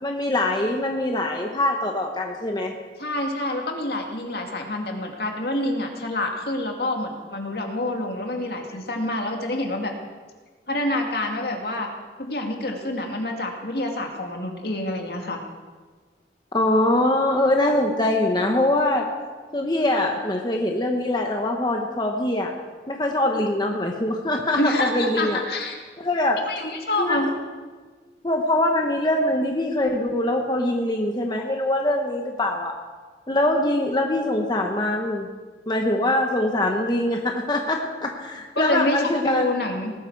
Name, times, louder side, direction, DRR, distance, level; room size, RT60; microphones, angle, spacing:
voice 1, 0.0-2.7 16.5-19.1 19.5-22.5 22.9-25.4 26.0-26.4 27.0-27.3 28.2-32.7 33.3-35.3 35.7-39.5, left 1 dB, 25° left, 2 dB, 1.1 m, -23 dB
voice 2, 3.0-9.9 10.7-11.9 12.2-15.4 24.6-25.8 26.5-27.3 38.6-39.9, left 1 dB, 60° left, 2 dB, 2.2 m, -27 dB
19.5 x 12.5 x 4.8 m, 1.4 s
head